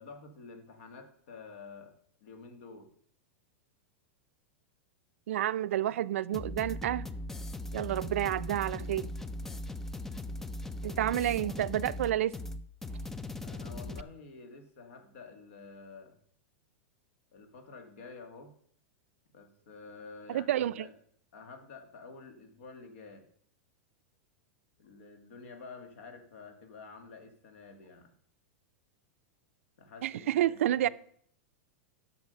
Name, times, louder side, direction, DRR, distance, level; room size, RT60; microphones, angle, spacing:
voice 1, 0.0-2.0 2.2-2.9 11.1-11.3 13.4-16.2 17.3-18.5 19.3-20.9 21.3-23.3 24.8-28.1 29.8-30.9, left 4 dB, 65° left, 7 dB, 2.0 m, -49 dB
voice 2, 5.3-7.1 7.7-9.1 10.8-12.3 20.3-20.9 30.0-30.9, right 12 dB, 80° right, 16 dB, 0.4 m, -29 dB
sound 1, 6.3-14.0, left 1 dB, 5° left, 0.3 m, -39 dB
10.5 x 6.4 x 5.2 m, 0.62 s
supercardioid pair, 165°, 7 cm